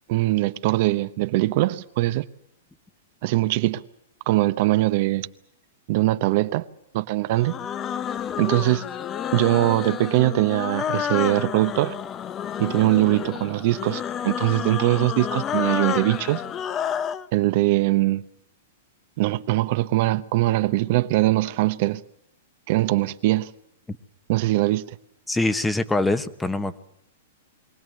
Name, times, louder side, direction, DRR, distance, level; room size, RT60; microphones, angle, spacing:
voice 1, 0.1-2.2 3.2-3.8 4.3-5.3 5.9-6.7 6.9-7.5 8.4-8.8 9.3-12.0 12.6-16.4 17.3-18.2 19.2-22.0 22.7-23.5 24.3-25.0, right 17 dB, 55° right, 0.9 m, -22 dB
sound 1, 7.3-17.3, left 9 dB, 25° left, 0.8 m, -30 dB
voice 2, 25.3-26.8, left 2 dB, 10° left, 1.1 m, -24 dB
23.5 x 17.0 x 9.3 m
hypercardioid pair, 125°, 0 cm